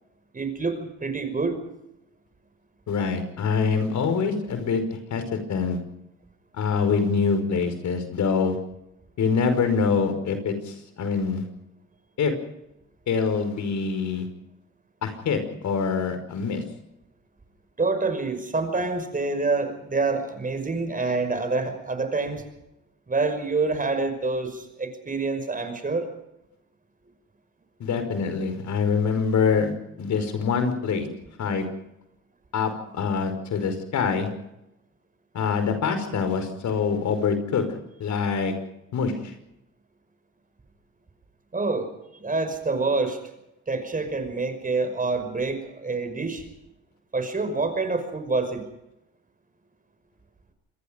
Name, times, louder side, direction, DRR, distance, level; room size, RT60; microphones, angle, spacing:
voice 1, 0.3-1.6 17.8-22.4 23.1-26.1 41.5-43.2 43.7-46.4 47.1-48.6, right 3 dB, 25° right, 8 dB, 5.6 m, -27 dB
voice 2, 2.9-5.8 6.6-8.6 9.2-11.4 12.2-12.3 13.1-14.3 15.0-16.6 27.8-29.7 30.0-31.1 31.4-31.7 32.5-34.3 35.3-37.6 38.0-38.5 38.9-39.1, left 5 dB, 70° left, 8 dB, 5.2 m, -25 dB
26.5 x 21.0 x 5.3 m, 0.86 s
cardioid pair, 90°, 30 cm